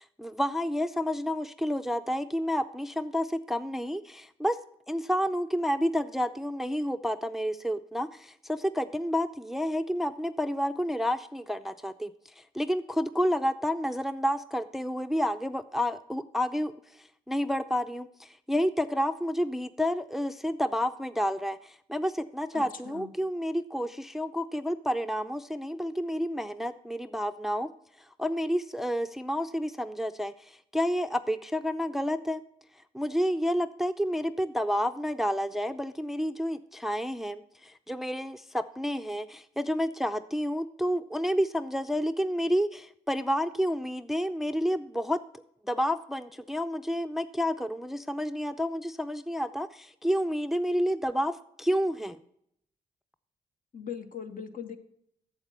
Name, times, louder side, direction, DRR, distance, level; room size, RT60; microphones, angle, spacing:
voice 1, 0.0-4.6 4.9-12.1 12.4-16.7 17.3-27.7 28.2-32.4 32.9-45.2 45.6-52.2, equal, ahead, 12 dB, 0.5 m, -30 dB
voice 2, 22.5-23.1 53.7-54.8, left 7 dB, 55° left, 8 dB, 1.1 m, -40 dB
7.9 x 7.4 x 5.5 m, 0.71 s
supercardioid pair, 45°, 16 cm